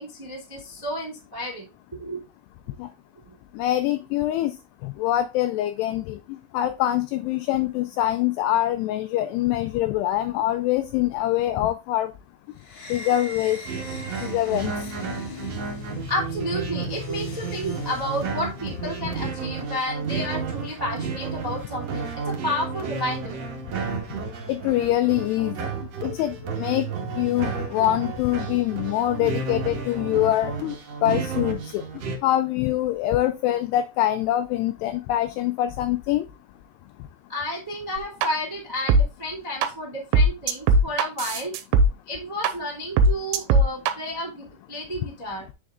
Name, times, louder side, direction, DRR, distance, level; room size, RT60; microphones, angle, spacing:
voice 1, 0.0-1.7 1.9-2.2 16.1-23.4 27.5-27.7 37.3-41.5 42.0-45.5, left 1 dB, 30° right, 0.4 m, -31 dB
voice 2, 3.6-4.5 4.8-12.1 12.9-13.7 14.2-14.7 24.5-25.7 26.0-26.8 27.2-30.7 31.0-31.8 32.2-36.2, left 13 dB, 85° left, 2.4 m, -24 dB
sound 1, 12.6-19.2, left 3 dB, 50° left, 2.2 m, -38 dB
sound 2, 13.6-32.2, right 5 dB, 75° right, 1.5 m, -32 dB
sound 3, 38.0-38.3 38.9-39.0 39.6-39.7 40.1-41.9 42.4-42.5 43.0-43.9, right 2 dB, 90° right, 3.0 m, -17 dB
7.7 x 6.4 x 2.4 m
omnidirectional pair, 5.3 m